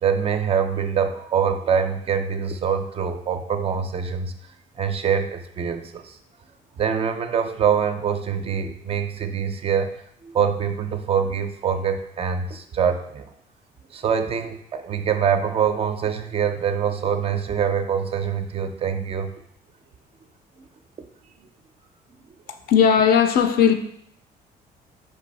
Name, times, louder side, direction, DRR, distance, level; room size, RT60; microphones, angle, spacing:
voice 1, 0.0-4.3 4.8-6.2 6.8-9.9 10.2-13.3 13.9-19.3, right 7 dB, 35° right, 0.4 m, -24 dB
voice 2, 22.7-23.7, left 7 dB, 60° left, 0.5 m, -17 dB
4.7 x 2.6 x 4.0 m
cardioid pair, 110°, 17 cm